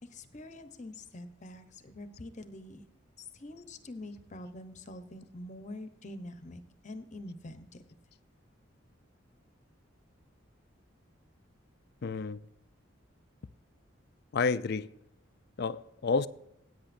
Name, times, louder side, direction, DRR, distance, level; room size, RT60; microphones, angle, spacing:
voice 1, 0.0-2.8 3.2-7.8, left 1 dB, 40° left, 0.9 m, -45 dB
voice 2, 12.0-12.4 14.3-14.9 15.6-16.3, left 4 dB, 55° left, 0.4 m, -30 dB
16.0 x 8.8 x 2.6 m
head